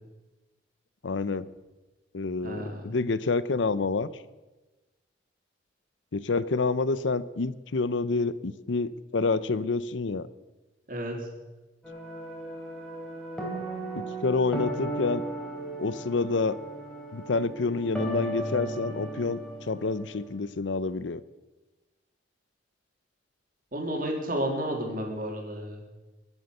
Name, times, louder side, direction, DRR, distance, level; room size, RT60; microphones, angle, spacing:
voice 1, 1.0-1.5 2.1-4.1 6.1-10.3 14.0-15.3 15.8-16.6 17.1-19.4 19.7-21.2, left 3 dB, 75° left, 16 dB, 0.6 m, -28 dB
voice 2, 2.4-2.8 10.9-11.3 23.7-25.8, equal, 45° right, 1 dB, 3.3 m, -31 dB
sound 1, 11.8-20.2, right 1 dB, 5° left, 3.6 m, -36 dB
23.0 x 8.1 x 6.7 m, 1.1 s
head